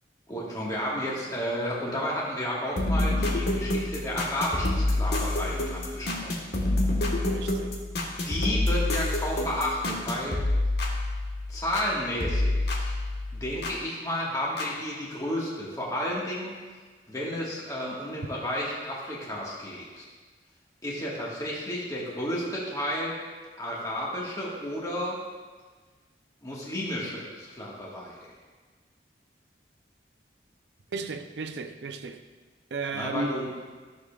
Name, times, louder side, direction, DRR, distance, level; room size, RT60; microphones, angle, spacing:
voice 1, 0.3-6.5 8.2-10.4 11.5-12.9 13.3-16.5 17.1-20.0 20.8-23.2 23.6-25.2 26.4-28.3 32.9-33.5, equal, 20° left, 1.5 m, -32 dB
sound 1, 2.8-11.9 12.2-13.8 14.6-14.7, left 1 dB, 65° left, 1.3 m, -28 dB
voice 2, 7.3-7.8 30.9-32.2 32.7-33.4, right 3 dB, 75° right, 0.6 m, -34 dB
14.0 x 6.8 x 2.4 m
head